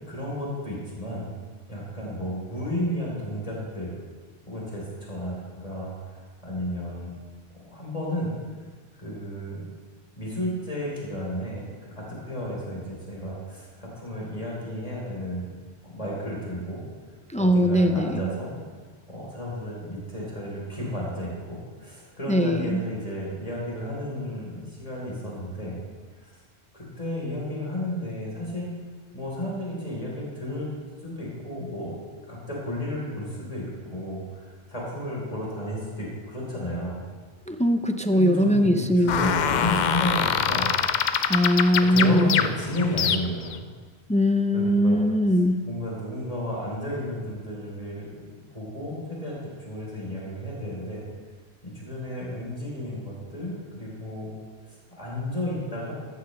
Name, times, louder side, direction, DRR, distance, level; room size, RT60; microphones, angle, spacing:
voice 1, 0.1-1.3 1.7-3.9 4.5-7.1 7.5-8.3 9.0-9.6 10.2-15.5 15.8-16.8 17.4-18.5 19.1-25.8 26.2-26.3 26.7-28.7 29.1-30.7 31.0-32.0 32.3-37.0 38.1-40.8 41.8-43.7 44.5-45.0 45.3-45.4 45.6-49.4 49.7-51.0 51.6-54.3 55.0-55.9, left 1 dB, 35° left, -5 dB, 3.6 m, -32 dB
voice 2, 17.3-18.3 22.3-22.8 37.5-39.3 41.3-42.4 44.1-45.6, equal, 10° left, 7 dB, 0.4 m, -21 dB
sound 1, 39.1-43.6, left 7 dB, 55° left, 0.6 m, -24 dB
14.5 x 13.5 x 3.2 m, 1.5 s
omnidirectional pair, 1.1 m